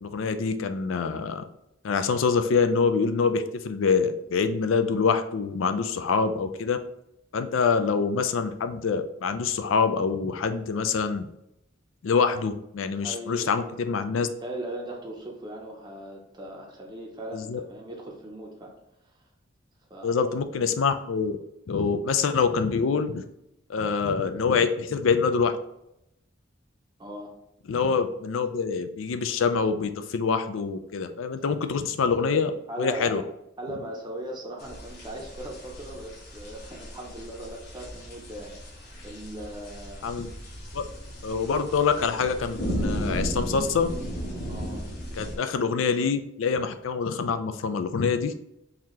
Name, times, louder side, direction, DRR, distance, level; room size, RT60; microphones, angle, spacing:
voice 1, 0.0-1.4 1.8-6.8 7.3-11.3 12.0-14.3 17.3-17.6 20.0-21.4 21.7-23.2 23.7-25.5 27.7-33.2 40.0-40.3 40.7-40.8 41.2-43.9 45.1-48.3, left 5 dB, 90° left, 9 dB, 0.4 m, -25 dB
voice 2, 13.0-13.8 14.2-18.7 19.9-20.2 27.0-27.4 32.7-33.2 33.6-40.1 44.5-44.9, right 1 dB, 20° right, -2 dB, 0.6 m, -39 dB
sound 1, 34.6-45.4, equal, 55° left, 1.1 m, -35 dB
4.0 x 2.8 x 3.0 m, 0.82 s
head